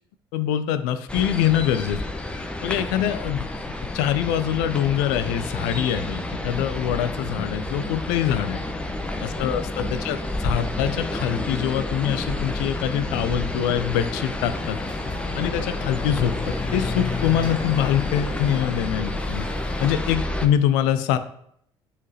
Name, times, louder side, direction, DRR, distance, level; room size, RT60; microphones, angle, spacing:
voice 1, 0.3-2.0 2.6-3.5 3.9-8.6 9.2-14.8 15.3-16.4 16.7-19.5 19.8-21.2, left 10 dB, 70° left, 11 dB, 0.5 m, -24 dB
sound 1, 1.1-20.5, left 1 dB, 10° left, 0.9 m, -30 dB
Chatter / Car passing by / Motorcycle, 14.5-19.9, left 4 dB, 35° left, 1.2 m, -33 dB
9.5 x 5.1 x 2.8 m, 0.70 s
hypercardioid pair, 55°, 14 cm